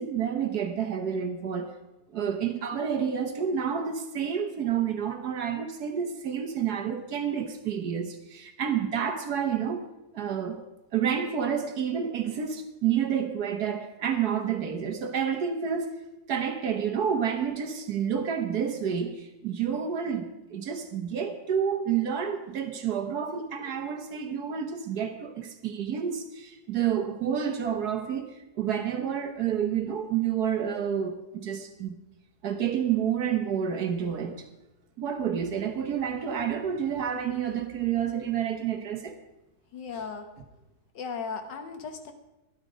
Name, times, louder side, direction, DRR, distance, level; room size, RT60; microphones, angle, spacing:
voice 1, 0.0-1.7 2.1-9.8 10.1-10.6 10.9-16.0 16.3-28.2 28.6-31.9 32.4-34.3 35.0-39.2, right 8 dB, 65° right, 1.5 m, -29 dB
voice 2, 39.7-40.3 41.0-42.1, left 5 dB, 85° left, 1.9 m, -36 dB
12.5 x 11.5 x 5.1 m
omnidirectional pair, 1.9 m